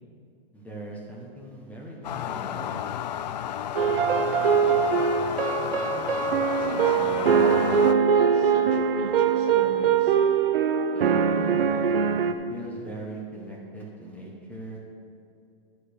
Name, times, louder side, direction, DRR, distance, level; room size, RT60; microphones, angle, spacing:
voice 1, 0.5-2.8 10.9-14.8, right 1 dB, 5° left, -3 dB, 1.2 m, -40 dB
sound 1, 2.0-7.9, left 10 dB, 45° left, 0.4 m, -32 dB
sound 2, 3.8-12.3, right 6 dB, 70° right, 0.8 m, -22 dB
voice 2, 6.2-10.2, right 4 dB, 35° right, 2 dB, 1.1 m, -40 dB
11.0 x 5.0 x 6.7 m, 2.5 s
hypercardioid pair, 145°, 30 cm